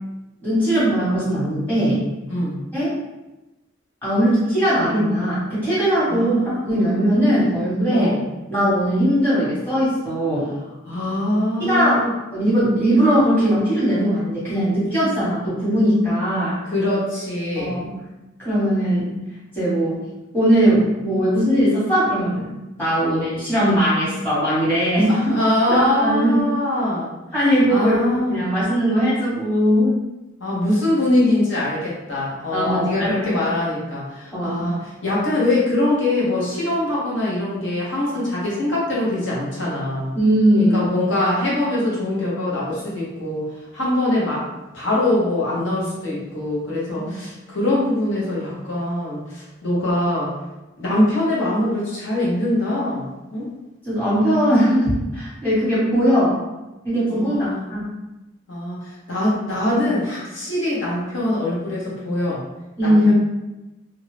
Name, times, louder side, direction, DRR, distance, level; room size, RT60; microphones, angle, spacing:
voice 1, 0.4-2.1 2.7-2.9 4.0-6.3 6.6-8.1 8.5-10.5 11.6-12.0 12.3-16.6 17.6-17.9 18.4-19.1 19.5-20.0 20.3-22.5 22.8-25.3 25.7-26.4 27.3-28.0 28.3-30.0 32.5-33.3 34.3-34.7 40.1-40.8 46.9-47.1 53.8-56.4 56.8-57.9 62.8-63.1, equal, 10° left, -10 dB, 1.2 m, -19 dB
voice 2, 2.3-2.6 6.1-7.0 7.9-8.2 10.9-12.1 16.6-17.8 18.9-19.1 23.0-23.2 25.1-27.1 27.7-28.4 30.4-40.2 40.6-43.5 43.7-44.5 44.7-50.3 50.8-53.5 57.1-57.7 58.5-62.4 62.8-63.1, left 1 dB, 80° left, -6 dB, 1.1 m, -23 dB
2.6 x 2.3 x 3.2 m, 1.0 s
head